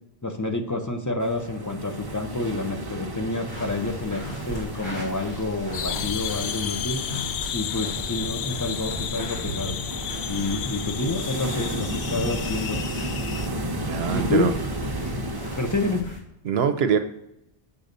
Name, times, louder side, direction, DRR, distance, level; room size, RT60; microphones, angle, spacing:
voice 1, 0.2-7.0 7.5-9.8 10.3-12.8 14.1-14.5 15.6-16.1, left 2 dB, 20° left, 5 dB, 0.6 m, -28 dB
sound 1, 1.2-16.0, right 1 dB, 25° right, 0.8 m, -34 dB
sound 2, 3.5-16.2, equal, 50° left, 2.4 m, -38 dB
sound 3, 5.7-13.5, left 10 dB, 80° left, 0.8 m, -32 dB
voice 2, 13.9-14.5 16.4-17.0, right 7 dB, 80° right, 8 dB, 0.8 m, -23 dB
7.0 x 3.9 x 6.6 m, 0.84 s
omnidirectional pair, 1.0 m